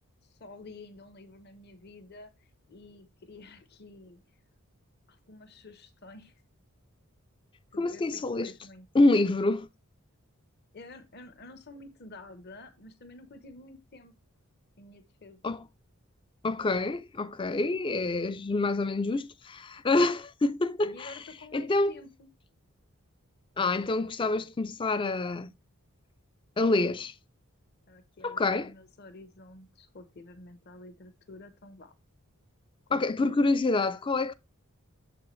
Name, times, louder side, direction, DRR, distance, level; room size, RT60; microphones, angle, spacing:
voice 1, 0.3-4.2 5.1-6.3 7.7-8.9 10.7-14.1 14.8-15.6 20.8-22.3 27.9-31.9 32.9-33.3, left 2 dB, 45° left, 0.9 m, -50 dB
voice 2, 7.8-8.5 8.9-9.7 15.4-15.6 16.4-21.2 21.5-21.9 23.6-25.5 26.6-27.1 28.2-28.7 32.9-34.3, left 2 dB, 20° left, 0.4 m, -27 dB
7.0 x 6.7 x 3.1 m
head